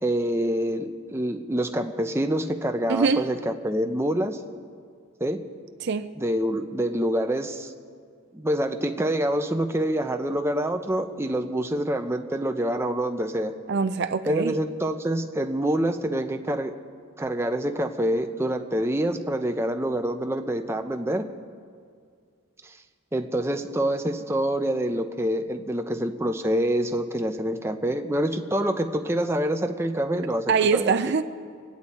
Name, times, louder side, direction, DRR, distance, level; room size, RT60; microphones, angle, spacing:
voice 1, 0.0-4.4 5.2-5.4 6.2-7.7 8.3-13.5 14.3-16.7 17.2-21.2 23.1-30.9, right 1 dB, 10° right, 6 dB, 0.6 m, -26 dB
voice 2, 2.9-3.3 5.8-6.1 13.7-14.6 30.5-31.2, right 5 dB, 50° right, 11 dB, 0.4 m, -23 dB
25.5 x 9.4 x 4.2 m, 2.1 s
head